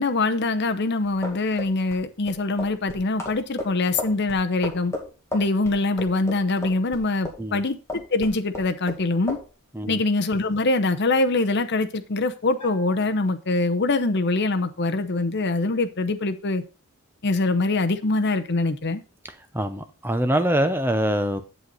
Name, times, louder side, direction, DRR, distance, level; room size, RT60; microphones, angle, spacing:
voice 1, 0.0-4.9 5.3-9.4 9.9-16.6 17.2-19.0, left 2 dB, 50° left, 0.8 m, -24 dB
sound 1, 1.2-7.6 7.9-9.0 9.3-9.5, left 2 dB, 15° left, 2.0 m, -34 dB
Bell, 12.6-14.2, right 2 dB, 30° left, 3.7 m, -49 dB
voice 2, 19.5-21.4, right 1 dB, 10° right, 0.7 m, -24 dB
8.0 x 7.8 x 4.1 m
head